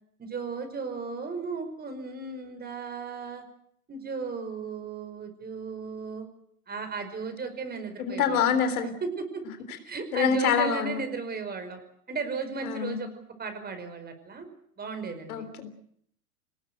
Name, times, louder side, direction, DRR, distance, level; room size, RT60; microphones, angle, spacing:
voice 1, 0.2-3.4 3.9-6.3 6.7-8.5 9.0-9.4 9.8-11.8 12.1-13.1 13.4-14.5 14.8-15.5, right 4 dB, 20° right, 8 dB, 5.2 m, -35 dB
voice 2, 8.0-8.9 10.1-10.9 12.6-13.1 15.3-15.7, left 7 dB, 65° left, 9 dB, 3.7 m, -26 dB
24.5 x 19.5 x 7.9 m, 0.68 s
hypercardioid pair, 110°, 46 cm